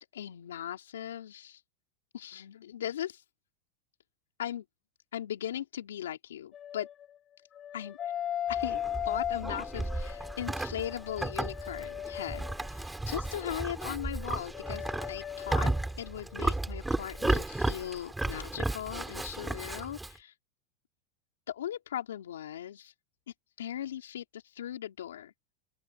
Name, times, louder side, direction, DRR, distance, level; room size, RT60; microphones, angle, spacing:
voice 1, 0.1-1.6 2.1-3.2 4.4-4.6 5.1-6.9 7.7-8.0 8.5-8.8 9.1-20.3 21.5-22.9 23.6-25.3, left 11 dB, 85° left, 3.6 m, -38 dB
sound 1, 6.5-7.0 7.6-12.7 13.2-16.8 17.0-17.3, left 10 dB, 35° left, 2.1 m, -38 dB
Livestock farm animals working animals, 8.5-20.2, right 2 dB, 5° right, 4.8 m, -34 dB
open air
hypercardioid pair, 115°, 0 cm